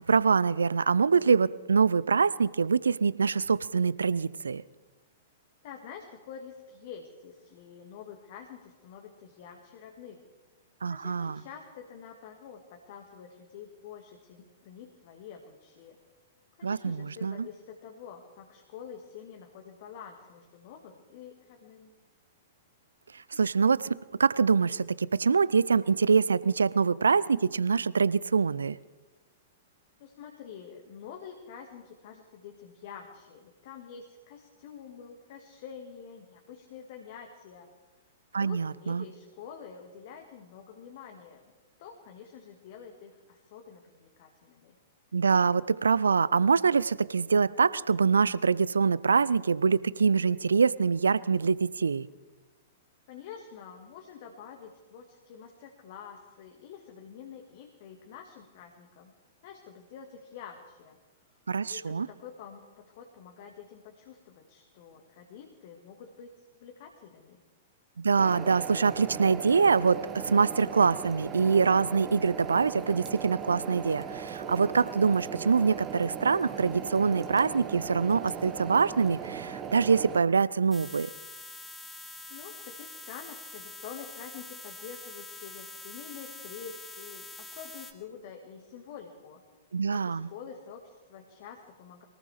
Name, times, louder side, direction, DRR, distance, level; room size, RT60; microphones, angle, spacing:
voice 1, 0.1-4.6 10.8-11.4 16.6-17.5 23.3-28.8 38.3-39.0 45.1-52.1 61.5-62.1 68.0-81.1 89.7-90.3, right 5 dB, 70° right, 20 dB, 0.4 m, -24 dB
voice 2, 5.6-10.2 10.9-16.0 16.6-21.9 30.0-37.7 38.3-41.4 41.8-44.8 53.1-59.1 59.4-61.0 61.6-67.4 82.3-89.4 89.9-92.0, left 7 dB, 45° left, 3 dB, 1.8 m, -47 dB
sound 1, 68.2-80.2, right 7 dB, 20° right, 1.6 m, -38 dB
sound 2, 80.7-87.9, left 3 dB, 10° left, 1.4 m, -45 dB
23.0 x 18.0 x 3.4 m, 1.2 s
figure-of-eight pair, 105°, 0 cm